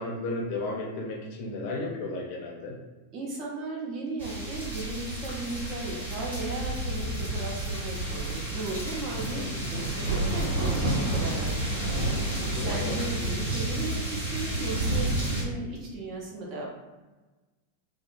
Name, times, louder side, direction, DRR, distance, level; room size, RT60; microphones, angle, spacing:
voice 1, 0.0-2.8 9.1-9.5 12.4-12.9, left 2 dB, 45° left, -2 dB, 0.5 m, -34 dB
voice 2, 3.1-11.8 12.5-16.7, right 2 dB, 35° right, -2 dB, 0.7 m, -36 dB
sound 1, 4.2-15.4, right 1 dB, 75° right, 1.1 m, -30 dB
2.7 x 2.4 x 2.5 m, 1.2 s
figure-of-eight pair, 90°, 0 cm